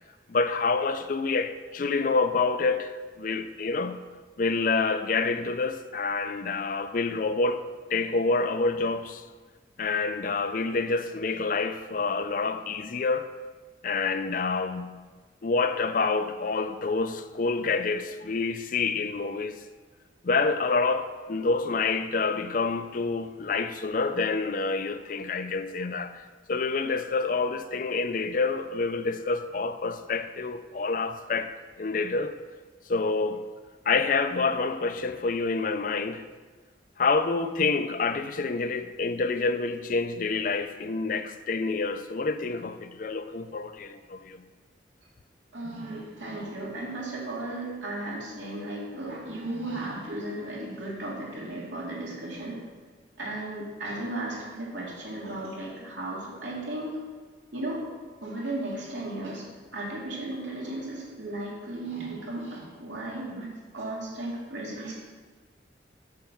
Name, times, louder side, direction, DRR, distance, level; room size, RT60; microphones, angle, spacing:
voice 1, 0.3-2.9 3.2-4.0 4.4-7.6 7.9-9.2 9.8-13.3 13.8-15.0 15.4-19.6 20.2-26.2 26.5-32.3 32.9-33.4 33.9-36.2 37.0-44.4, left 4 dB, 45° left, 0.4 m, -27 dB
voice 2, 45.5-52.6 53.2-57.0 57.5-57.8 58.2-59.5 59.7-63.5 63.7-64.9, right 2 dB, 85° right, 2.7 m, -35 dB
7.9 x 5.7 x 7.0 m
head